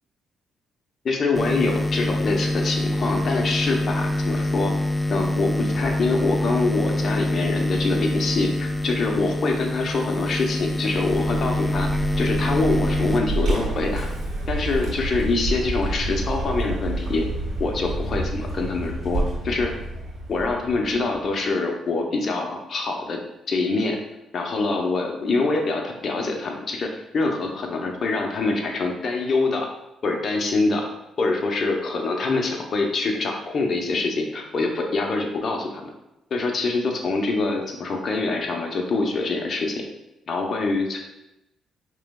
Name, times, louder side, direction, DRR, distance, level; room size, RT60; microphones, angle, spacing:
voice 1, 1.0-4.7 5.1-11.9 12.2-14.1 14.5-17.3 17.6-19.7 20.3-23.2 23.5-24.0 24.3-29.7 30.0-30.9 31.2-35.8 36.3-39.8 40.3-41.0, left 3 dB, 50° left, 1 dB, 0.7 m, -25 dB
sound 1, 1.4-14.3, left 1 dB, 10° left, 0.4 m, -25 dB
Vehicle, 10.9-21.2, right 2 dB, 65° right, 1.4 m, -29 dB
4.8 x 3.0 x 2.2 m, 0.90 s
cardioid pair, 90°, 0 cm